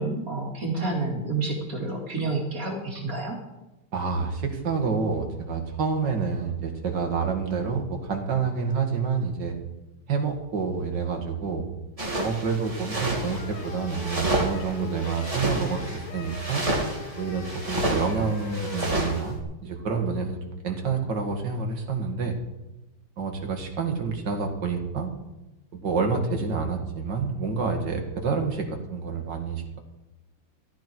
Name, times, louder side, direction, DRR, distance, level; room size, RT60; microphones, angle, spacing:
voice 1, 0.0-3.4, right 3 dB, 40° right, 0 dB, 2.9 m, -29 dB
voice 2, 3.9-9.5 10.1-11.7 12.2-16.6 17.2-20.4 20.6-22.4 23.2-25.1 25.7-29.8, right 5 dB, 55° right, 3 dB, 2.5 m, -28 dB
sound 1, 12.0-19.2, right 1 dB, 15° right, 2.5 m, -30 dB
sound 2, 13.2-19.4, left 5 dB, 85° left, 2.4 m, -40 dB
15.0 x 13.0 x 4.6 m, 1.0 s
omnidirectional pair, 2.4 m